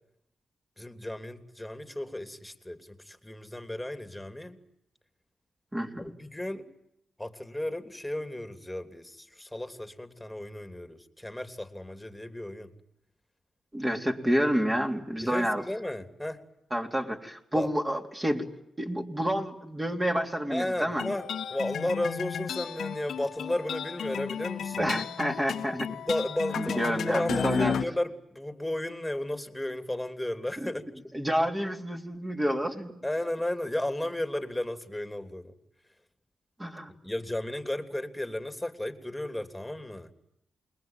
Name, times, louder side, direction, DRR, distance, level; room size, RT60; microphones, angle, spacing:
voice 1, 0.8-4.6 6.0-6.6 7.2-12.7 15.2-16.4 17.5-17.7 20.5-24.9 25.8-30.9 33.0-35.5 37.0-40.1, left 1 dB, 10° left, 8 dB, 3.2 m, -34 dB
voice 2, 5.7-6.1 13.7-15.6 16.7-18.5 18.8-21.1 24.8-25.9 26.6-27.8 30.6-30.7 31.1-32.9 36.6-36.9, equal, 15° right, 2 dB, 3.7 m, -29 dB
sound 1, 21.0-27.8, left 8 dB, 80° left, 1.4 m, -34 dB
28.5 x 22.0 x 9.2 m, 0.79 s
cardioid pair, 70°, 0 cm